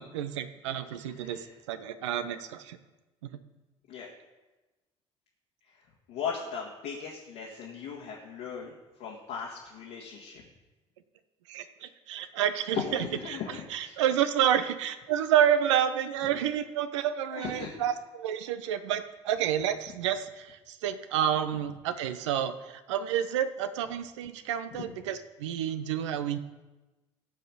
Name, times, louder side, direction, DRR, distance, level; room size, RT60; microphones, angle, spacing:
voice 1, 0.0-2.8 3.2-3.3 11.5-13.4 13.7-26.4, right 10 dB, 75° right, 11 dB, 0.8 m, -29 dB
voice 2, 0.9-1.5 3.9-4.1 5.7-5.8 6.1-8.7 9.0-10.4 12.7-14.0 17.3-17.9 24.7-24.9, left 6 dB, 65° left, -3 dB, 1.8 m, -38 dB
15.5 x 5.8 x 6.9 m, 1.1 s
figure-of-eight pair, 55°, 15 cm